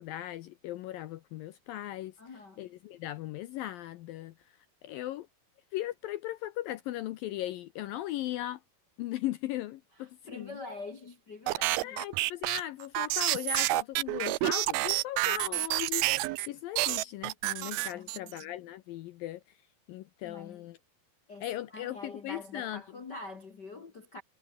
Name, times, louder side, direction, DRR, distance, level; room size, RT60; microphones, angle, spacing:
voice 1, 0.0-2.1 2.6-4.3 4.8-5.3 5.7-8.6 9.0-10.6 11.8-19.4 19.9-20.8 21.4-22.8, left 14 dB, 80° left, 2.0 m, -38 dB
voice 2, 2.2-2.7 10.0-12.0 17.9-18.5 20.2-20.7 21.3-24.2, left 3 dB, 60° left, 1.1 m, -45 dB
sound 1, 11.5-16.5 16.8-18.4, right 20 dB, 80° right, 2.2 m, -29 dB
omnidirectional pair, 5.0 m